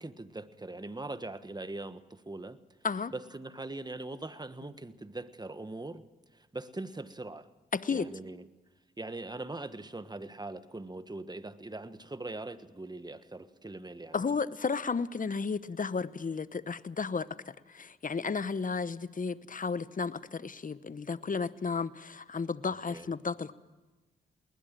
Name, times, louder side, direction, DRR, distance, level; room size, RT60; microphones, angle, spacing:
voice 1, 0.0-2.6 3.1-6.0 6.3-7.5 7.9-8.5 9.0-14.2 22.9-23.1, right 2 dB, 20° right, 1.4 m, -41 dB
voice 2, 7.7-8.1 14.1-23.5, left 5 dB, 40° left, 1.0 m, -33 dB
20.0 x 20.0 x 7.6 m
supercardioid pair, 50°, 21 cm